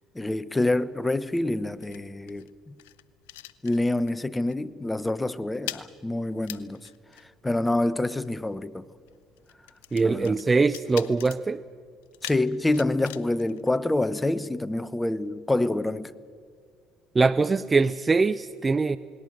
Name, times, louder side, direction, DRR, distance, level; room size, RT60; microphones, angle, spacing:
voice 1, 0.1-2.8 3.6-6.9 7.4-8.9 10.0-10.4 12.2-16.1, left 2 dB, 15° left, 1.0 m, -27 dB
sound 1, 0.9-4.2 4.5-4.8 5.0-14.4, left 15 dB, 85° left, 0.7 m, -44 dB
voice 2, 9.9-11.6 17.1-19.0, right 4 dB, 25° right, 0.6 m, -22 dB
28.5 x 20.0 x 6.5 m
hypercardioid pair, 70°, 0 cm